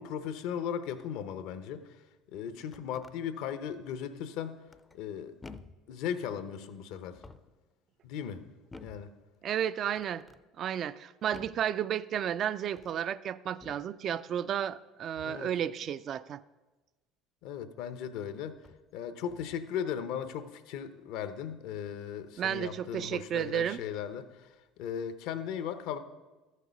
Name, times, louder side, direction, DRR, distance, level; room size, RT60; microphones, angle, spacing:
voice 1, 0.0-2.0 2.3-4.6 4.9-5.3 5.9-7.2 8.0-8.4 8.8-9.1 15.2-15.5 17.4-18.6 18.9-26.0, left 8 dB, 70° left, 11 dB, 0.8 m, -37 dB
sound 1, 2.6-3.2 4.7-5.1 5.4-5.9 7.0-7.6 8.7-9.1 9.9-10.4 11.3-11.7 12.7-13.0 13.6-13.9 15.1-15.5 17.6-17.7 18.5-18.9 19.3-19.7, left 3 dB, 20° left, 0.5 m, -51 dB
voice 2, 9.4-10.2 10.6-16.4 22.4-23.8, right 9 dB, 50° right, 16 dB, 0.4 m, -32 dB
13.5 x 6.5 x 5.2 m, 1.2 s
supercardioid pair, 85°, 0 cm